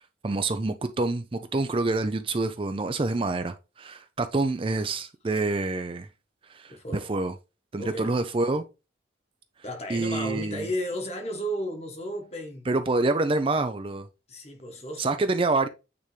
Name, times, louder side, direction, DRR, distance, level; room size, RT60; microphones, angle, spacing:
voice 1, 0.2-6.1 6.5-6.7 7.1-7.3 7.7-8.6 9.9-10.7 12.7-14.1 15.0-15.7, right 3 dB, 25° right, 0.4 m, -27 dB
voice 2, 6.7-7.1 7.8-8.2 9.6-12.7 14.3-15.2, equal, 35° left, 1.3 m, -34 dB
8.9 x 3.5 x 3.2 m
head